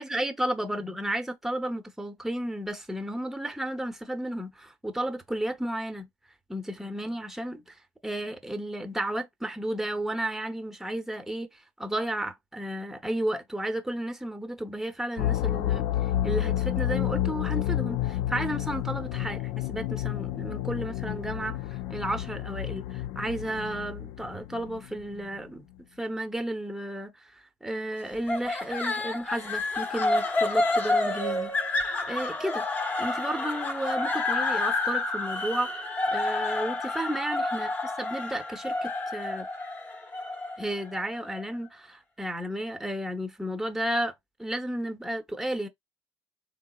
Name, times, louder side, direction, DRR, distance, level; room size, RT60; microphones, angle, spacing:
voice 1, 0.0-6.1 6.5-15.9 16.2-25.7 26.0-31.5 32.1-32.6 33.0-37.7 38.0-39.5 40.6-44.1 44.4-45.7, right 1 dB, 5° right, 0.7 m, -33 dB
sound 1, 15.2-25.0, left 13 dB, 70° left, 0.3 m, -30 dB
sound 2, 28.3-41.4, left 2 dB, 30° left, 0.9 m, -29 dB
3.4 x 2.9 x 2.3 m
supercardioid pair, 80°, 7 cm